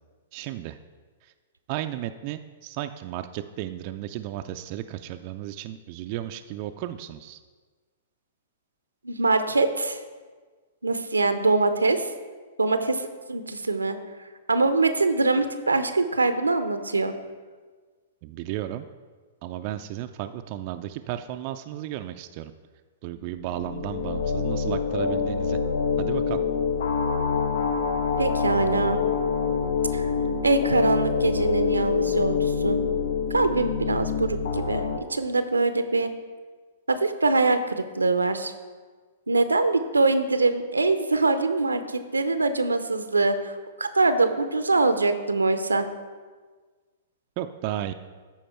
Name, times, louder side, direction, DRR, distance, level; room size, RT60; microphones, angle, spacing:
voice 1, 0.3-0.8 1.2-1.3 1.7-7.4 18.2-18.8 19.4-22.5 23.0-25.6 26.0-26.4 47.4-47.9, right 13 dB, 45° right, 8 dB, 0.4 m, -34 dB
voice 2, 9.0-10.0 10.8-12.1 12.6-13.0 13.3-14.0 14.5-17.1 28.2-29.0 29.9-30.1 30.4-32.8 33.3-36.1 36.9-38.5 39.3-45.9, right 3 dB, 90° right, 10 dB, 0.6 m, -23 dB
sound 1, 23.4-35.0, left 5 dB, 65° left, 0.8 m, -26 dB
13.0 x 4.6 x 4.4 m, 1.4 s
figure-of-eight pair, 110°, 0 cm